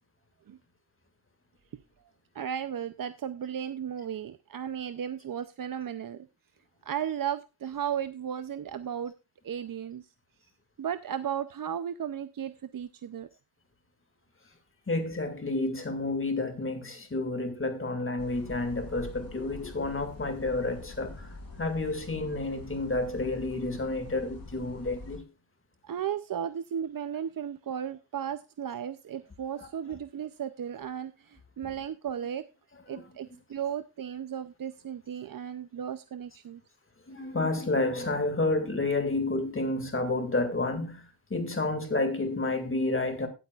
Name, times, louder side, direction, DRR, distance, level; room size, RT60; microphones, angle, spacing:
voice 1, 2.3-6.3 6.8-9.1 9.4-10.1 10.8-13.3 25.8-32.5 32.9-36.6, right 9 dB, 50° right, 0.5 m, -35 dB
voice 2, 14.9-25.3 29.5-29.7 32.9-33.0 37.1-43.3, left 2 dB, 30° left, 2.0 m, -30 dB
sound 1, 18.2-25.2, left 3 dB, 50° left, 3.2 m, -45 dB
16.5 x 8.2 x 2.4 m
wide cardioid pair, 175°, 44 cm